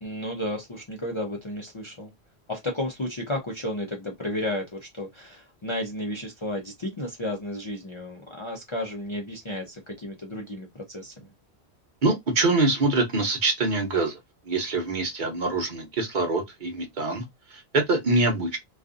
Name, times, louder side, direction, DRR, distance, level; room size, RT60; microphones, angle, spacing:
voice 1, 0.0-2.1 2.5-11.3, left 1 dB, 35° left, 0.5 m, -33 dB
voice 2, 12.0-14.2 14.5-17.2 17.5-18.6, right 2 dB, 50° right, 0.8 m, -24 dB
2.5 x 2.4 x 2.4 m
omnidirectional pair, 1.1 m